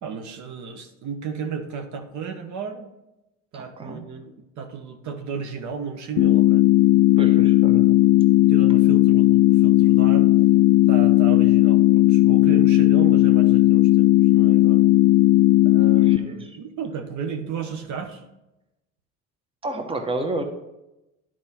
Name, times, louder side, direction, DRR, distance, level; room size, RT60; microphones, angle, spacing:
voice 1, 0.0-2.9 3.5-6.6 7.7-10.3 10.9-14.8 15.6-18.2, right 6 dB, 60° right, 6 dB, 1.0 m, -34 dB
voice 2, 3.5-4.0 7.2-7.9 16.0-16.6 19.6-20.4, right 2 dB, 15° right, 6 dB, 1.0 m, -31 dB
sound 1, 6.2-16.2, left 16 dB, 75° left, 0.5 m, -16 dB
10.0 x 4.7 x 4.3 m, 0.95 s
supercardioid pair, 85°, 32 cm